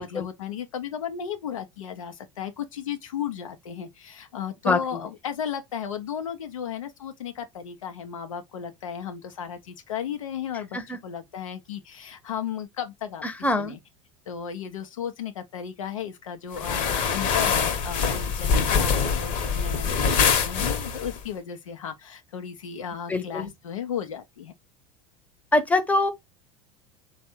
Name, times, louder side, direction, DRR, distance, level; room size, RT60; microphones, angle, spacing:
voice 1, 0.0-13.2 13.6-13.8 14.3-24.5, left 8 dB, 85° left, 0.7 m, -35 dB
voice 2, 4.6-5.1 10.7-11.0 13.2-13.8 23.1-23.5 25.5-26.1, left 2 dB, 10° left, 0.8 m, -24 dB
sound 1, 16.5-21.2, left 6 dB, 55° left, 1.0 m, -24 dB
3.4 x 2.3 x 4.3 m
hypercardioid pair, 85°, 16 cm